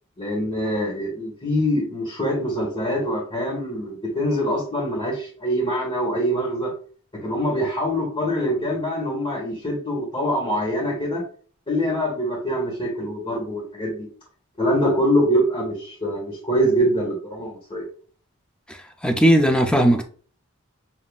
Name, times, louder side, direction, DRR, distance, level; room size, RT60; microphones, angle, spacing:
voice 1, 0.2-6.7 7.2-11.2 11.7-14.1 14.6-17.9, equal, 25° left, 1.6 m, -24 dB
voice 2, 19.0-20.1, equal, 5° left, 0.5 m, -17 dB
7.2 x 2.7 x 2.4 m
head